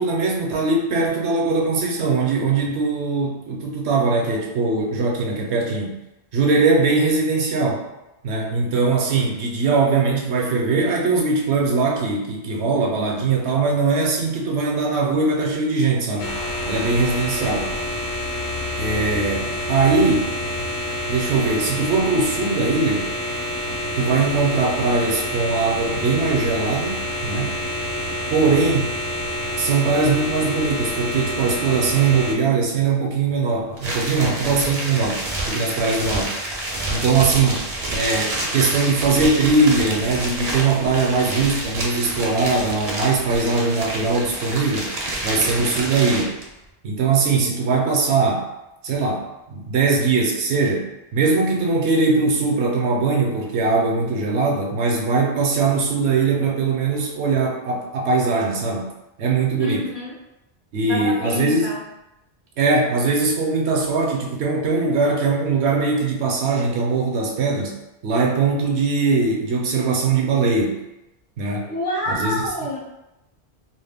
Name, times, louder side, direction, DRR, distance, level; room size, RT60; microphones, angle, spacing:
voice 1, 0.0-6.0 6.3-7.8 8.2-16.4 16.7-17.7 18.8-20.3 21.1-23.1 24.0-27.6 28.3-28.9 29.6-36.4 36.9-44.9 45.2-46.4 46.8-48.5 48.8-58.9 59.2-59.9 60.7-61.7 62.6-67.7 68.0-70.8 71.4-71.7 72.1-72.4, right 4 dB, 75° right, -1 dB, 0.9 m, -21 dB
sound 1, 16.2-32.3, left 1 dB, 85° left, 0.9 m, -27 dB
sound 2, 33.8-46.4, right 1 dB, 45° right, 0.5 m, -28 dB
voice 2, 59.6-60.2 60.8-61.8 71.7-72.8, left 1 dB, 60° left, -3 dB, 0.6 m, -27 dB
2.4 x 2.1 x 3.4 m, 0.93 s
omnidirectional pair, 1.1 m